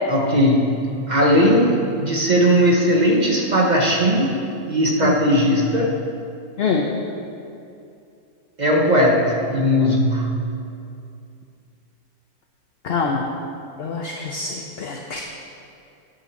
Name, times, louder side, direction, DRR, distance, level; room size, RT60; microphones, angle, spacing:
voice 1, 0.1-0.8 1.1-4.4 4.7-6.0 8.6-10.4, equal, 35° right, 0 dB, 0.9 m, -18 dB
voice 2, 12.8-13.2 13.8-14.5 14.8-15.2, left 5 dB, 50° left, 1 dB, 0.8 m, -24 dB
10.0 x 5.6 x 7.1 m, 2.5 s
omnidirectional pair, 1.6 m